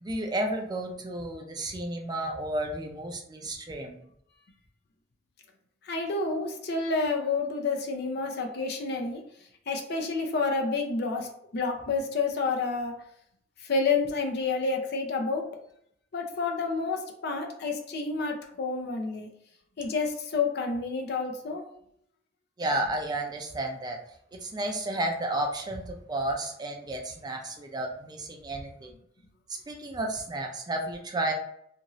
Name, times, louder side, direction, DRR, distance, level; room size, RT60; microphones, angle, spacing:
voice 1, 0.0-4.0 22.6-24.0 24.4-28.9 29.7-31.3, right 1 dB, 20° right, 2 dB, 0.4 m, -32 dB
voice 2, 5.8-9.2 9.7-12.9 13.6-15.5 16.1-19.3 19.8-21.6, left 4 dB, 60° left, 3 dB, 0.5 m, -29 dB
2.5 x 2.4 x 3.0 m, 0.71 s
head